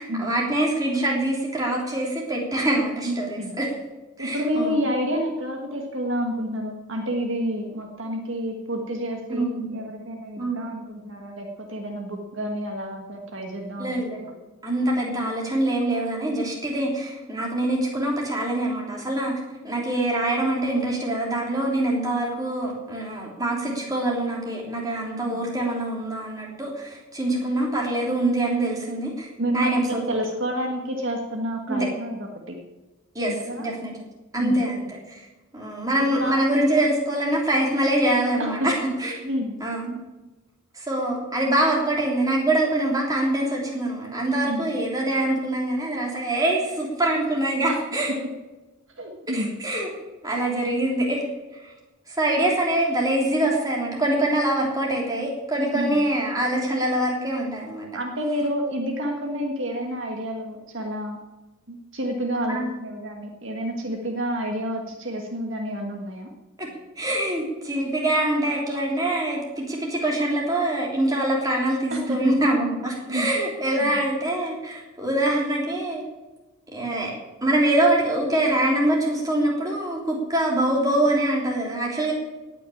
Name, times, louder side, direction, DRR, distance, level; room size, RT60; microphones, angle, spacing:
voice 1, 0.0-3.7 4.2-4.8 9.3-10.6 13.8-14.2 14.6-19.3 19.6-29.3 29.5-30.2 31.7-31.8 33.1-33.9 34.3-35.2 35.5-38.7 39.0-39.1 39.6-40.0 40.7-48.1 49.3-49.9 50.2-51.2 51.6-51.7 52.1-57.9 62.5-62.6 66.6-66.7 67.0-76.0 76.7-77.1 77.4-82.1, right 1 dB, 15° right, -2 dB, 3.4 m, -24 dB
voice 2, 3.0-3.6 4.2-14.4 25.1-25.4 29.4-32.6 33.2-33.7 34.4-34.6 36.1-36.4 38.4-38.7 39.2-39.6 44.4-44.7 47.7-47.8 49.0-49.6 55.7-56.0 57.9-61.2 61.7-66.3 71.9-72.3 73.0-73.3 73.8-74.0, equal, 60° right, 2 dB, 1.6 m, -29 dB
18.5 x 6.2 x 8.6 m, 1.1 s
head